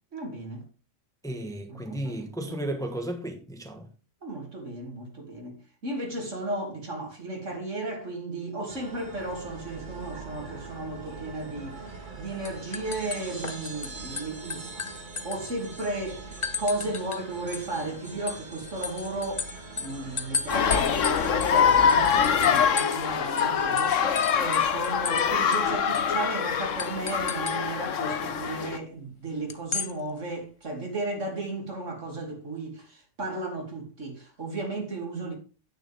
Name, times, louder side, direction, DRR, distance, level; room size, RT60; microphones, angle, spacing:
voice 1, 0.1-0.6 1.7-2.1 2.4-2.6 4.2-14.9 15.2-16.3 16.6-19.5 19.8-35.3, right 2 dB, 70° right, 3.0 m, -34 dB
voice 2, 1.2-3.9, right 1 dB, 5° left, 1.2 m, -34 dB
sound 1, 8.7-22.1, right 3 dB, 40° right, 1.9 m, -43 dB
sound 2, 11.9-12.2 12.4-13.9 14.2-15.9 16.4-17.2 17.5-23.1 23.4-23.5 23.8-25.3 25.5-25.6 25.9-26.1 26.8-27.6 29.5-29.9, left 5 dB, 30° left, 0.6 m, -34 dB
sound 3, 20.5-28.8, left 7 dB, 80° left, 1.3 m, -24 dB
9.9 x 9.1 x 3.5 m
omnidirectional pair, 1.3 m